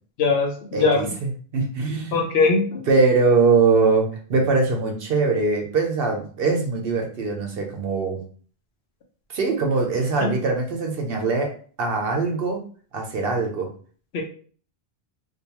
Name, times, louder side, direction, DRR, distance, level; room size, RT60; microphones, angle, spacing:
voice 1, 0.2-1.0 2.1-2.8 10.2-10.3 14.1-14.2, left 4 dB, 70° left, 1 dB, 0.9 m, -20 dB
voice 2, 0.7-2.2 2.9-8.2 9.3-11.5 11.8-12.6 12.9-13.7, right 4 dB, 65° right, 2 dB, 0.8 m, -22 dB
2.6 x 2.2 x 2.8 m, 0.43 s
omnidirectional pair, 1.1 m